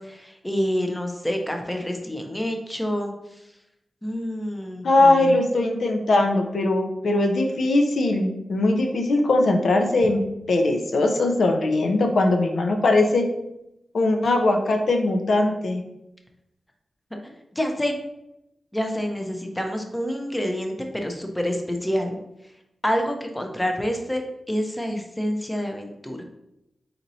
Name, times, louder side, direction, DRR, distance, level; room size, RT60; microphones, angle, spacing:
voice 1, 0.0-3.1 4.0-5.3 17.2-17.9 18.7-22.2 22.8-24.2 24.5-26.2, equal, 10° left, 3 dB, 0.6 m, -27 dB
voice 2, 4.8-10.2 10.5-13.3 13.9-15.8, left 2 dB, 75° left, 4 dB, 0.5 m, -20 dB
4.3 x 4.1 x 2.7 m, 0.86 s
wide cardioid pair, 85°, 0 cm